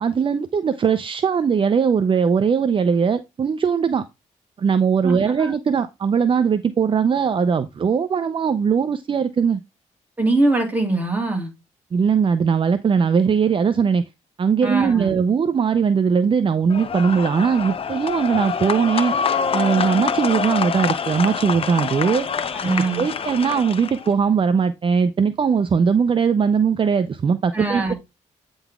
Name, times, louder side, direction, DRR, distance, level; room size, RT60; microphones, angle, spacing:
voice 1, 0.0-4.0 4.6-9.6 11.9-14.1 14.4-19.2 19.5-22.3 23.0-27.9, right 6 dB, 40° right, 0.6 m, -20 dB
voice 2, 5.0-5.5 10.2-11.5 14.6-15.1 22.5-23.1 27.5-27.9, right 2 dB, 10° right, 3.0 m, -22 dB
sound 1, 16.7-24.1, left 6 dB, 45° left, 0.8 m, -26 dB
9.2 x 4.0 x 3.5 m
cardioid pair, 105°, 13 cm